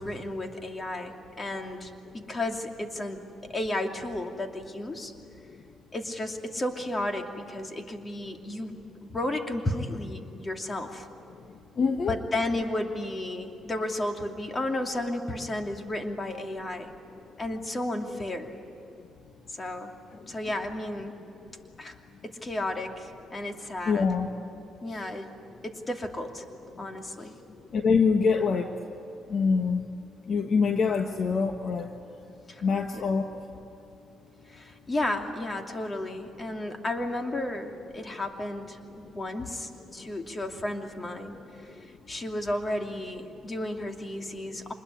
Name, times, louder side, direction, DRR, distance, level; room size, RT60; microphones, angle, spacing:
voice 1, 0.0-3.2 3.5-5.1 5.9-11.1 12.1-16.9 17.4-18.5 19.5-19.9 20.3-21.1 21.8-21.9 22.2-24.1 24.8-25.3 25.6-26.4 26.8-27.3 32.5-32.6 32.9-33.1 34.5-41.7 42.1-44.7, left 1 dB, 30° left, 4 dB, 2.7 m, -33 dB
voice 2, 11.8-12.1 23.9-24.3 24.9-25.0 27.7-28.7 29.3-29.8 30.3-31.9 32.6-33.3 43.4-43.5 44.5-44.6, left 5 dB, 55° left, 5 dB, 1.4 m, -25 dB
26.5 x 21.5 x 9.9 m, 2.8 s
cardioid pair, 90°, 0 cm